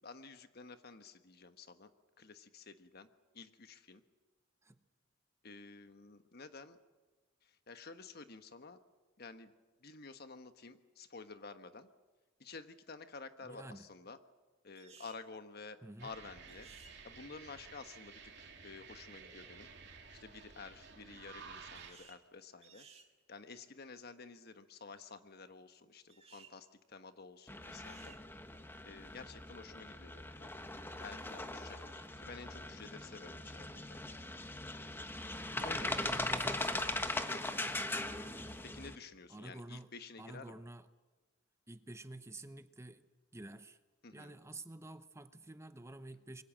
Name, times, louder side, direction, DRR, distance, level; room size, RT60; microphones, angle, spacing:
voice 1, 0.0-1.9 2.2-3.1 3.3-4.0 5.4-6.8 7.4-8.8 9.2-9.5 9.8-11.9 12.4-14.2 14.6-16.7 17.0-19.7 20.1-22.9 23.3-28.2 28.8-30.5 31.0-34.0 35.6-35.9 37.3-37.6 38.6-40.6 44.0-44.4, left 4 dB, 55° left, 9 dB, 1.3 m, -51 dB
voice 2, 13.4-13.9 15.8-16.2 35.5-36.9 39.3-39.9 40.2-40.8 41.7-43.0 43.3-43.8 44.1-46.4, right 2 dB, 15° right, 11 dB, 0.8 m, -49 dB
sound 1, 14.7-15.2 16.5-17.0 21.7-22.2 22.6-23.1 26.1-26.5 27.7-28.2, right 6 dB, 35° right, 1.8 m, -59 dB
sound 2, 16.0-21.9, right 5 dB, 60° right, 3.3 m, -53 dB
sound 3, 27.5-39.0, left 2 dB, 10° left, 1.2 m, -40 dB
25.5 x 23.0 x 7.4 m, 1.3 s
head